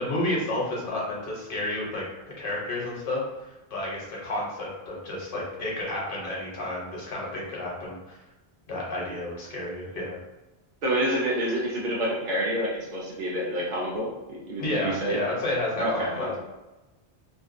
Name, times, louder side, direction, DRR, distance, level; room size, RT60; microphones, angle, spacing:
voice 1, 0.0-2.0 2.4-3.2 3.7-8.2 8.7-10.1 14.6-16.4, left 1 dB, 60° left, -4 dB, 0.9 m, -31 dB
voice 2, 10.8-15.2 15.8-16.4, right 1 dB, 60° right, -4 dB, 0.6 m, -28 dB
2.5 x 2.1 x 2.4 m, 1.1 s
omnidirectional pair, 1.0 m